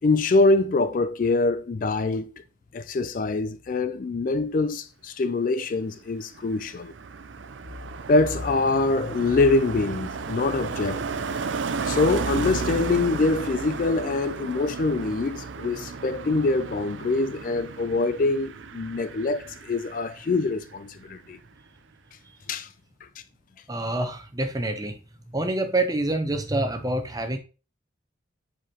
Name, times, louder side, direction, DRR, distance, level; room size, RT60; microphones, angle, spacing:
voice 1, 0.0-2.3 2.7-6.9 8.1-11.0 11.8-21.4 22.5-22.7, left 3 dB, 40° left, 0.3 m, -24 dB
Car passing by, 6.0-20.8 21.0-21.3, right 4 dB, 70° right, 0.5 m, -34 dB
voice 2, 23.7-25.0 25.3-27.4, right 2 dB, 20° right, 0.7 m, -26 dB
7.4 x 4.8 x 2.9 m
head